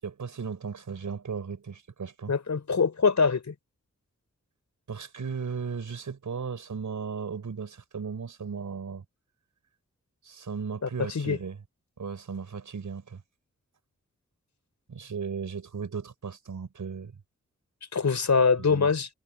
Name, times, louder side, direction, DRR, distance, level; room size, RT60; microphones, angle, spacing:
voice 1, 0.0-2.3 4.9-9.0 10.2-11.6 12.0-13.2 14.9-17.2 18.7-18.9, right 6 dB, 80° right, 6.6 m, -36 dB
voice 2, 2.3-3.5 10.8-11.4 17.9-19.1, left 5 dB, 65° left, 4.7 m, -24 dB
cardioid pair, 45°, 30 cm